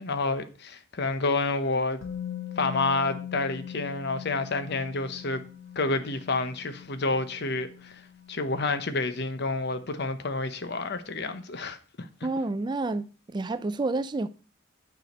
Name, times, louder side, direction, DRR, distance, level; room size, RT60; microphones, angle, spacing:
voice 1, 0.0-2.0 2.6-5.4 5.8-8.0 8.3-12.1, left 3 dB, 55° left, 0.9 m, -29 dB
Musical instrument, 2.0-9.9 10.2-10.4, left 9 dB, 85° left, 2.0 m, -42 dB
voice 2, 12.2-14.3, right 2 dB, 20° right, 0.3 m, -29 dB
9.4 x 4.9 x 5.2 m
head